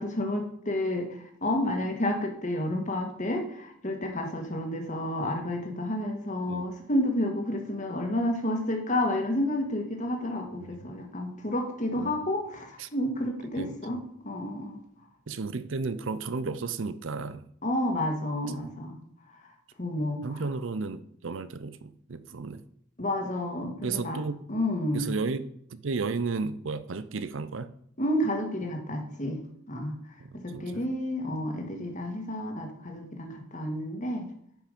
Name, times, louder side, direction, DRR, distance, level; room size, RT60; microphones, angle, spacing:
voice 1, 0.0-14.0 14.2-14.8 17.6-19.0 19.8-20.4 23.0-24.2 24.5-25.1 28.0-29.4 29.7-29.9 30.4-34.3, left 1 dB, 35° left, 3 dB, 1.8 m, -30 dB
voice 2, 10.6-10.9 12.0-12.3 12.8-12.9 13.6-14.0 15.3-17.4 18.5-18.6 20.2-22.6 23.8-24.4 24.9-27.7 30.2-30.8, right 4 dB, 70° right, 14 dB, 0.6 m, -34 dB
10.0 x 5.9 x 5.2 m, 0.68 s
head